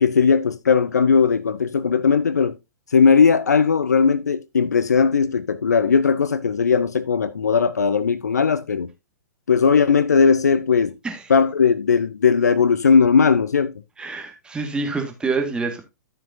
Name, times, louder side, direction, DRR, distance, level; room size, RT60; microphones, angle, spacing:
voice 1, 0.0-2.5 2.9-8.9 9.5-10.9 11.3-13.7, left 5 dB, 70° left, 0.6 m, -18 dB
voice 2, 14.0-15.8, right 4 dB, 10° right, 1.8 m, -26 dB
13.5 x 6.0 x 2.7 m
figure-of-eight pair, 105°, 9 cm